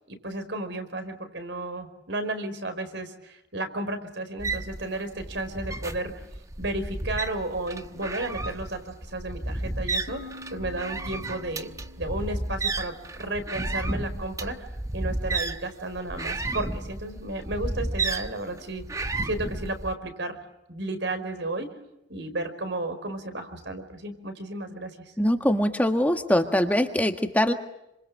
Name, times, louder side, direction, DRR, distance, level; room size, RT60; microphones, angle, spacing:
voice 1, 0.1-6.3 6.6-11.7 12.0-14.7 14.9-18.8 19.2-20.4 20.7-21.7 22.1-24.9, right 2 dB, 70° right, 9 dB, 4.9 m, -33 dB
sound 1, 4.4-19.9, right 2 dB, 15° right, 1.1 m, -32 dB
sound 2, 10.1-13.7, left 3 dB, 60° left, 3.4 m, -47 dB
voice 2, 25.2-27.5, equal, 10° left, 5 dB, 1.6 m, -23 dB
29.0 x 26.5 x 7.7 m, 0.89 s
head